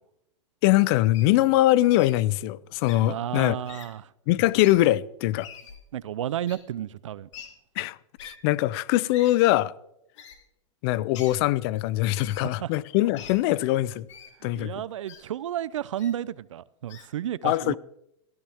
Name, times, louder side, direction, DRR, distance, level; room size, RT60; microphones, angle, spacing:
voice 1, 0.6-3.6 4.3-5.5 7.8-9.7 10.8-14.1 14.4-14.7 17.4-17.8, left 16 dB, 55° left, 0.6 m, -22 dB
Wild animals, 1.1-1.3 2.0-2.1 2.8-3.0 3.6-3.9 4.5-4.8 5.4-5.8 6.5-6.6 7.3-7.5 8.2-8.3 9.1-9.3 10.2-10.4 11.1-11.4 12.1-12.4 13.2-13.3 14.1-14.3 15.1-15.2 16.0-16.1 16.9-17.1, left 7 dB, 75° left, 3.2 m, -44 dB
voice 2, 3.1-4.1 5.9-7.3 12.4-12.7 14.4-17.8, right 11 dB, 85° right, 0.6 m, -32 dB
18.5 x 14.0 x 3.6 m
hypercardioid pair, 115°, 16 cm